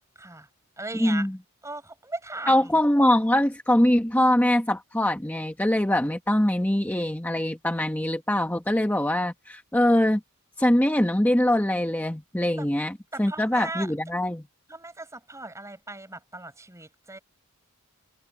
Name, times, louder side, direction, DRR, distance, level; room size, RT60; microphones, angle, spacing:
voice 1, 0.2-0.5 0.8-1.3 1.6-2.8 12.6-12.7 13.1-13.9 14.7-17.2, right 2 dB, 15° right, 6.6 m, -37 dB
voice 2, 1.0-1.4 2.5-10.2 10.6-14.4, left 1 dB, 10° left, 1.2 m, -23 dB
head